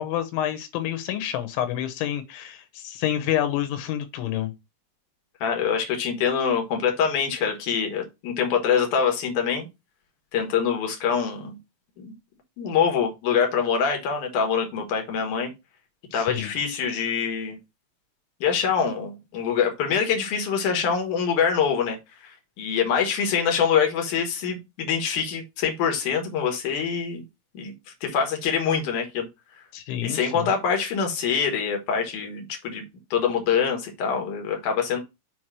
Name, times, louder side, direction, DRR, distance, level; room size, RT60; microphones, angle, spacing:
voice 1, 0.0-4.5 16.1-16.5 29.7-30.5, left 11 dB, 90° left, 3.3 m, -28 dB
voice 2, 5.4-9.7 10.3-11.6 12.0-12.1 12.6-15.5 16.1-17.6 18.4-22.0 22.2-27.2 27.5-27.7 28.0-29.3 30.0-32.8 33.1-35.0, left 7 dB, 60° left, 2.3 m, -25 dB
7.1 x 3.0 x 6.0 m
omnidirectional pair, 5.2 m